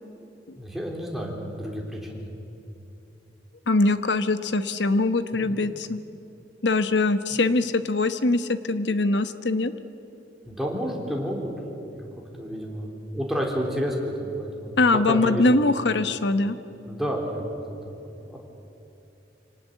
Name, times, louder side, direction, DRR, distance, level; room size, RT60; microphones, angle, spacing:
voice 1, 0.5-2.3 5.3-5.5 7.3-7.4 10.5-11.5 11.8-12.1 12.4-15.6 16.9-18.4, equal, ahead, -1 dB, 3.7 m, -31 dB
voice 2, 3.7-6.0 6.6-9.7 14.8-16.6, left 2 dB, 80° left, 11 dB, 1.1 m, -22 dB
25.0 x 18.5 x 8.2 m, 2.9 s
head